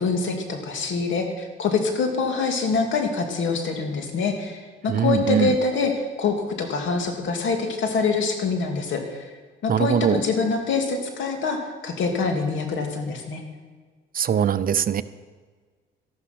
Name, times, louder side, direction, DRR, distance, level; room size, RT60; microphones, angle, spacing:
voice 1, 0.0-9.3 9.6-13.4, left 4 dB, 75° left, 4 dB, 2.5 m, -25 dB
voice 2, 4.9-5.5 9.7-10.2 14.1-15.0, right 8 dB, 45° right, 14 dB, 0.6 m, -21 dB
13.0 x 12.0 x 6.0 m, 1.5 s
cardioid pair, 90°, 20 cm